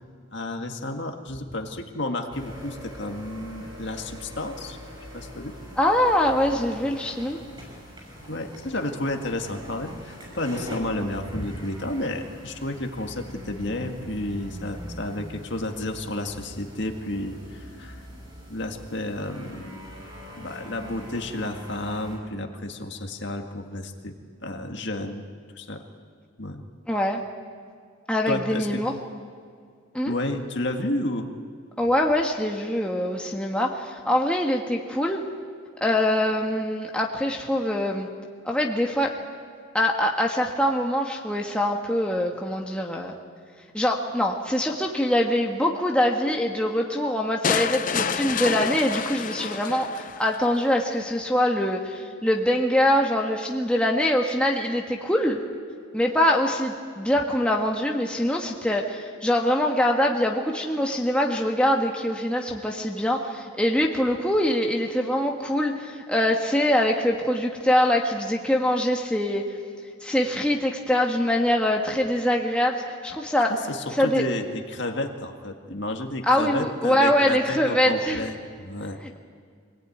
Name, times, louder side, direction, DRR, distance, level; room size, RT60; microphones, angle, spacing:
voice 1, 0.3-4.8 5.1-5.5 8.3-18.0 18.5-19.8 20.4-24.1 24.4-25.3 25.6-25.8 26.4-26.6 28.3-28.8 30.1-31.3 73.5-79.0, left 1 dB, 55° left, 4 dB, 1.9 m, -31 dB
sound 1, 2.3-22.2, equal, 20° right, 6.4 m, -42 dB
voice 2, 5.8-7.4 26.9-27.2 28.1-28.9 29.9-30.1 31.8-35.3 35.8-38.1 38.4-39.1 39.7-43.1 43.7-55.4 55.9-69.4 70.0-73.5 73.9-74.2 76.3-78.3, left 1 dB, 5° left, 0 dB, 1.5 m, -23 dB
sound 2, 47.4-50.4, left 6 dB, 40° left, 0.6 m, -28 dB
25.0 x 18.0 x 9.4 m, 2.1 s
head